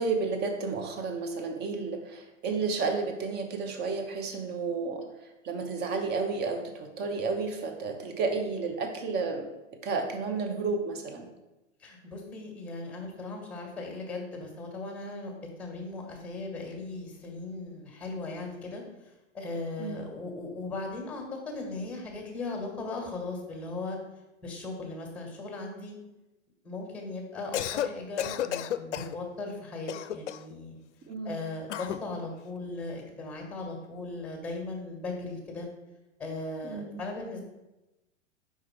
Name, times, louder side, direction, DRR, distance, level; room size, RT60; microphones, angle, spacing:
voice 1, 0.0-5.0 5.4-9.5 9.8-11.3 19.8-20.0 31.1-31.4 36.6-37.0, right 4 dB, 25° right, 5 dB, 0.9 m, -31 dB
voice 2, 11.8-24.0 24.4-26.0 26.6-30.8 31.2-35.7 36.2-37.4, left 3 dB, 5° left, 0 dB, 1.8 m, -38 dB
Cough, 27.4-27.9 28.2-29.2 29.9-30.5 31.7-32.0, left 10 dB, 70° left, 0.5 m, -32 dB
5.0 x 4.9 x 4.4 m, 0.99 s
figure-of-eight pair, 105°, 37 cm